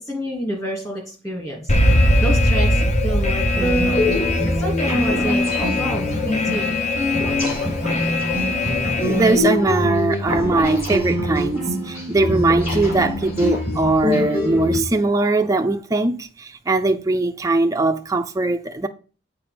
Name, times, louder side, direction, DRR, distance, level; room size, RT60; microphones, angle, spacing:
voice 1, 0.0-6.7, equal, 15° left, 2.5 m, -29 dB
Alarm, 1.7-9.4, left 1 dB, 35° left, 0.9 m, -21 dB
sound 1, 3.5-14.8, left 1 dB, 50° left, 4.4 m, -23 dB
voice 2, 8.8-18.9, right 2 dB, 15° right, 0.4 m, -20 dB
7.3 x 4.6 x 5.1 m
head